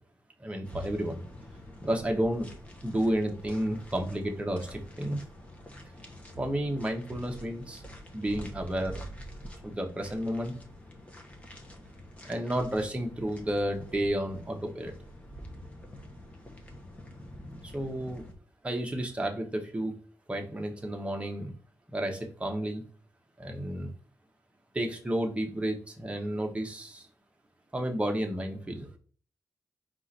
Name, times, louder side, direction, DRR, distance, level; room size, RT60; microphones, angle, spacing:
voice 1, 0.4-1.2 1.8-2.5 2.8-5.2 6.3-7.8 8.1-9.0 9.6-10.5 12.3-14.9 17.6-18.2 18.6-19.9 20.3-21.5 21.9-22.8 23.4-23.9 24.7-27.1 27.7-28.9, right 1 dB, 15° right, 2 dB, 1.0 m, -31 dB
sound 1, 0.6-18.3, equal, 20° left, 1.0 m, -47 dB
4.7 x 2.5 x 4.1 m, 0.42 s
cardioid pair, 90°, 7 cm